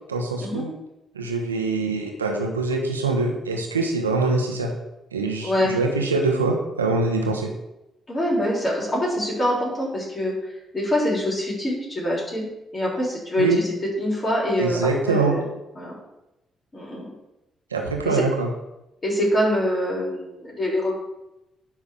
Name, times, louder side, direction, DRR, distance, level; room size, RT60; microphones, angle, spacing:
voice 1, 0.1-0.7 1.1-4.7 5.1-7.5 13.4-13.6 14.6-15.4 17.7-18.5, right 3 dB, 90° right, 2 dB, 1.0 m, -24 dB
voice 2, 5.4-5.8 8.1-10.3 10.7-12.5 12.7-15.5 15.8-15.9 16.7-17.1 18.0-18.3 19.0-20.9, equal, 35° left, -4 dB, 3.5 m, -24 dB
10.0 x 3.6 x 6.2 m, 0.91 s
figure-of-eight pair, 40°, 0 cm